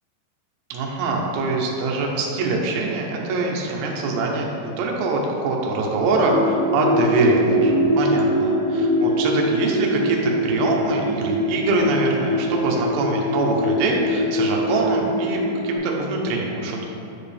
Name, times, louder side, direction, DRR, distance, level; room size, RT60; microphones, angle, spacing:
voice 1, 0.7-16.9, right 3 dB, 80° right, -1 dB, 3.0 m, -24 dB
sound 1, 6.2-15.8, equal, 75° left, 4.0 m, -23 dB
10.5 x 4.8 x 3.4 m, 2.9 s
omnidirectional pair, 5.0 m